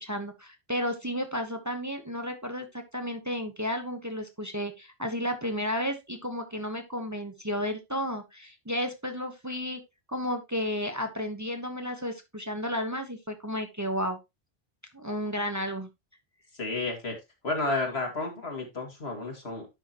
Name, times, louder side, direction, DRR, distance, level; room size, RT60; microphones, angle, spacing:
voice 1, 0.0-9.8 10.1-14.2 14.9-15.9, equal, 15° right, 6 dB, 1.0 m, -32 dB
voice 2, 16.6-17.1 17.4-19.7, left 2 dB, 75° left, 2 dB, 2.7 m, -31 dB
10.0 x 6.3 x 2.9 m, 0.22 s
omnidirectional pair, 1.1 m